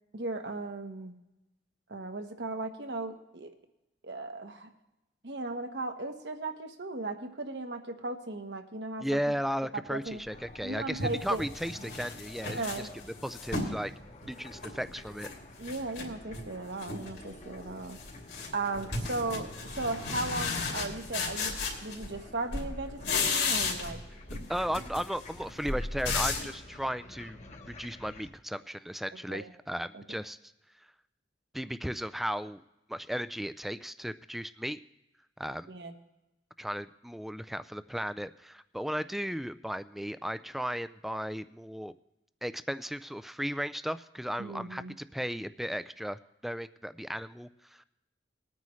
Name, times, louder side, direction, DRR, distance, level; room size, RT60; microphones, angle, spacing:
voice 1, 0.1-1.2 1.9-3.5 4.0-4.7 5.2-9.2 9.7-10.2 10.6-11.4 12.4-12.9 15.6-18.0 18.5-19.5 19.7-21.6 21.8-24.0 29.3-29.5 30.1-30.2 35.7-35.9 44.4-45.0, right 2 dB, 70° right, 6 dB, 1.2 m, -36 dB
voice 2, 9.0-12.6 13.2-13.9 14.3-15.3 24.5-27.4 27.7-30.4 31.5-32.6 32.9-34.8 35.4-35.7 36.6-41.9 42.4-47.8, equal, ahead, 14 dB, 0.3 m, -35 dB
sound 1, 10.3-10.4 11.0-13.8 14.2-15.3 15.6-16.5 16.8-17.2 17.5-22.2 22.5-24.0 24.3-26.5, left 4 dB, 75° left, 2.9 m, -34 dB
sound 2, 10.3-28.3, left 2 dB, 40° left, 1.1 m, -50 dB
20.0 x 9.5 x 3.1 m, 0.93 s
head